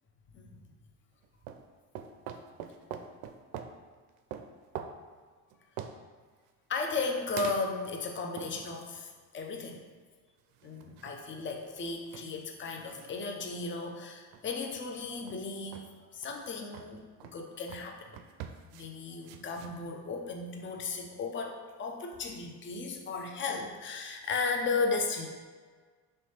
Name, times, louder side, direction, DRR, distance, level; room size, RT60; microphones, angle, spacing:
sound 1, 1.2-1.7 1.9-3.8 4.3-5.0 5.5-6.0 7.4-8.0 8.4-9.0 10.5-11.7 12.1-12.3 12.6-13.2 13.7-13.8 14.3-14.8 15.3-15.4 15.7-15.9 16.2-16.4 16.7-16.9 17.2-17.4 17.7-17.9 18.1-18.9 19.2-19.7, right 8 dB, 70° right, 0.5 m, -44 dB
voice 1, 6.7-9.8 10.6-17.0 17.3-18.1 18.7-25.3, left 4 dB, 25° left, 2 dB, 0.6 m, -35 dB
3.2 x 3.1 x 4.3 m, 1.5 s
hypercardioid pair, 65°, 47 cm